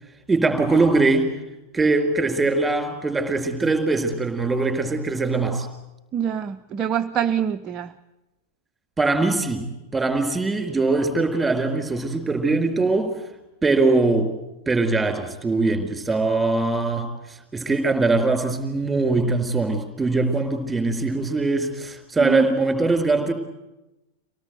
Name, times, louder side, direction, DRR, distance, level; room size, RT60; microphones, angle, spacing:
voice 1, 0.3-1.3 1.7-5.7 9.0-13.1 13.6-14.3 14.7-23.3, right 3 dB, 10° right, 6 dB, 4.4 m, -22 dB
voice 2, 6.1-7.9 22.2-22.5, right 9 dB, 30° right, 6 dB, 0.8 m, -25 dB
25.5 x 18.0 x 9.3 m, 1.0 s
figure-of-eight pair, 90°, 0 cm